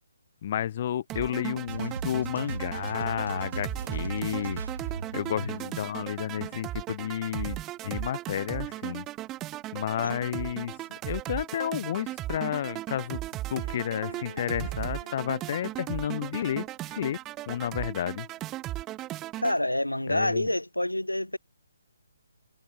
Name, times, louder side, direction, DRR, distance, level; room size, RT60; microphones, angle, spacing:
voice 1, 0.4-4.6 5.1-9.0 9.7-13.2 13.5-17.2 17.5-18.3 20.1-20.5, left 10 dB, 35° left, 1.1 m, -31 dB
sound 1, 1.1-19.6, right 15 dB, 15° right, 0.4 m, -37 dB
sound 2, 1.7-6.6, right 5 dB, 55° right, 1.8 m, -37 dB
voice 2, 5.3-5.6 10.0-10.1 19.4-21.4, left 1 dB, 85° left, 0.6 m, -28 dB
Bowed string instrument, 13.5-17.2, equal, 85° right, 5.5 m, -49 dB
figure-of-eight pair, 140°, 0 cm